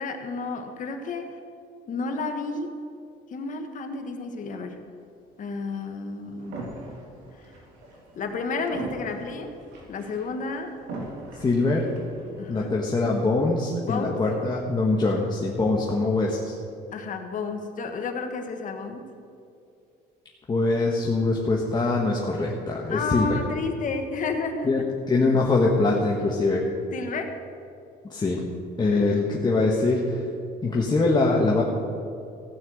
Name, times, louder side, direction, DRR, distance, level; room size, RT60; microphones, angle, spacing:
voice 1, 0.0-1.3 1.9-2.8 3.3-4.8 5.4-6.7 8.1-9.5 9.9-10.8 12.4-12.7 13.8-14.2 16.9-19.1 22.9-24.7 26.9-27.4 28.8-29.2, left 4 dB, 50° left, 5 dB, 1.5 m, -31 dB
sound 1, 6.4-12.9, right 2 dB, 90° right, 3.0 m, -41 dB
voice 2, 11.4-11.9 12.5-16.5 20.5-23.4 24.6-26.6 28.1-28.4 28.8-30.2 30.6-31.6, left 3 dB, 25° left, -2 dB, 1.4 m, -23 dB
16.0 x 5.8 x 7.9 m, 2.5 s
cardioid pair, 110°, 17 cm